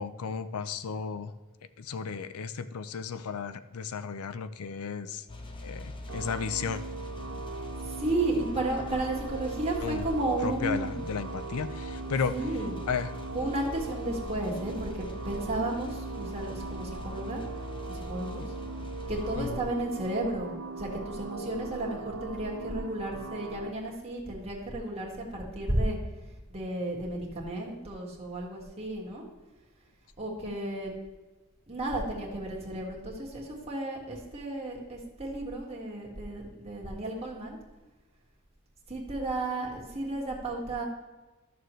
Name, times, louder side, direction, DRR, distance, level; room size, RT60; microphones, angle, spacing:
voice 1, 0.0-1.3 1.8-5.3 5.6-6.8 9.8-10.1 10.4-12.4 12.9-13.1 19.4-19.6, left 6 dB, 90° left, 13 dB, 0.5 m, -34 dB
sound 1, 5.3-19.5, left 1 dB, 25° left, 0.7 m, -41 dB
sound 2, 6.1-23.7, right 4 dB, 70° right, 0.5 m, -40 dB
voice 2, 7.6-10.9 12.2-12.8 13.3-17.4 17.9-18.5 19.1-26.0 26.5-29.2 30.2-30.9 31.7-37.6 38.9-40.8, right 1 dB, 30° right, -3 dB, 1.8 m, -33 dB
13.0 x 6.7 x 3.1 m, 1.2 s
head